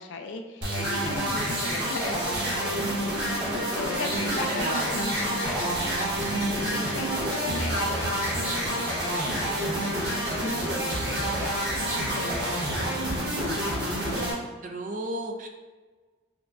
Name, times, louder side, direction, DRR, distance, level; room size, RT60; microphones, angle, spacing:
voice 1, 0.0-6.0 6.5-7.1 7.5-14.2, left 3 dB, 70° left, 5 dB, 0.4 m, -38 dB
sound 1, 0.6-14.3, right 1 dB, 55° right, 1.3 m, -28 dB
Bell, 4.1-11.7, left 1 dB, 5° left, 1.0 m, -41 dB
voice 2, 4.2-4.8 14.6-15.5, right 2 dB, 40° right, 4 dB, 0.4 m, -33 dB
sound 2, 5.7-13.4, equal, 90° right, 0.9 m, -45 dB
5.8 x 2.3 x 2.5 m, 1.3 s
head